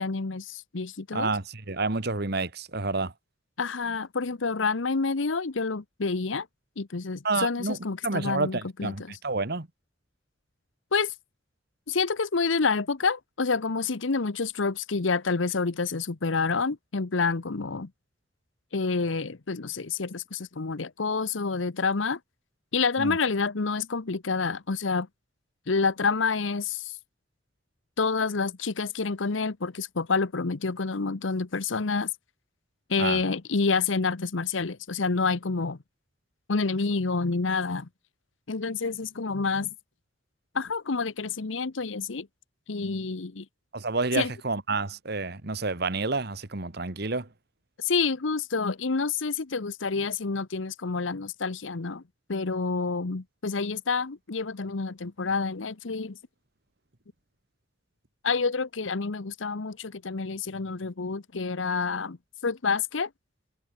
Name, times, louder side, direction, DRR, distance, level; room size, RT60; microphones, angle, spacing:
voice 1, 0.0-1.3 3.6-6.5 6.8-9.2 10.9-11.1 11.9-17.9 18.7-22.2 22.7-25.1 25.7-27.0 28.0-32.1 32.9-35.8 36.5-37.9 38.5-39.7 40.5-42.3 42.7-43.4 44.1-44.3 47.8-52.0 52.3-56.2 58.2-62.2 62.4-63.1, left 4 dB, 90° left, 1.0 m, -28 dB
voice 2, 1.1-3.1 7.2-7.8 8.0-9.7 23.0-23.2 33.0-33.2 43.7-47.3, right 3 dB, 60° right, 1.7 m, -29 dB
head